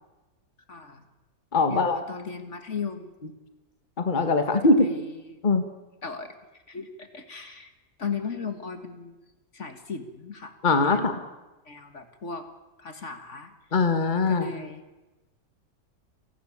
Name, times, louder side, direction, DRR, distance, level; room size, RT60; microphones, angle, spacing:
voice 1, 0.7-1.0 1.7-3.1 4.5-5.4 6.0-7.7 8.0-9.2 9.5-11.1 11.7-12.5 12.8-13.5 14.3-14.8, left 5 dB, 50° left, 8 dB, 1.9 m, -37 dB
voice 2, 1.5-2.0 4.0-4.9 5.4-5.6 10.6-11.2 13.7-14.5, left 3 dB, 30° left, 8 dB, 1.7 m, -22 dB
30.0 x 12.0 x 8.6 m, 1.1 s
omnidirectional pair, 1.6 m